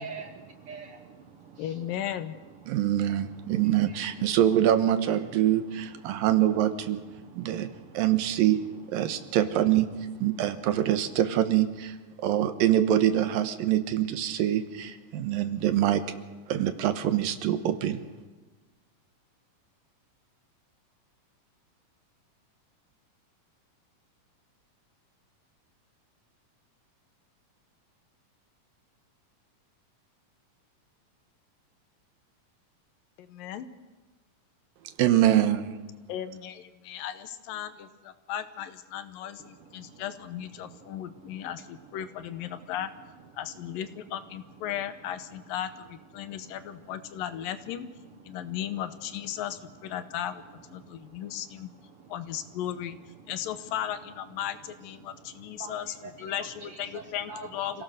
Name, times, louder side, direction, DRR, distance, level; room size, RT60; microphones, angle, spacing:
voice 1, 0.0-1.9 2.5-2.7 3.5-3.6 3.9-4.1 6.1-6.2 7.2-8.0 9.0-9.2 39.4-40.0 40.6-42.0 42.5-42.7 43.5-43.6 46.2-47.2 48.2-48.5 49.3-49.4 50.8-51.4 51.8-52.6 53.2-53.3 55.0-57.8, right 5 dB, 70° right, 5 dB, 1.4 m, -48 dB
voice 2, 1.6-2.3 33.2-33.7 36.1-42.9 43.4-47.9 48.3-50.4 50.7-51.7 52.1-53.0 53.3-57.8, left 10 dB, 80° left, 11 dB, 2.7 m, -36 dB
voice 3, 2.7-5.6 6.1-7.0 7.5-7.7 8.0-8.6 8.9-9.9 10.2-11.7 12.2-14.6 15.1-16.0 16.5-18.0 35.0-35.6, right 12 dB, 90° right, 10 dB, 2.9 m, -24 dB
26.5 x 17.0 x 6.5 m, 1.3 s
omnidirectional pair, 3.9 m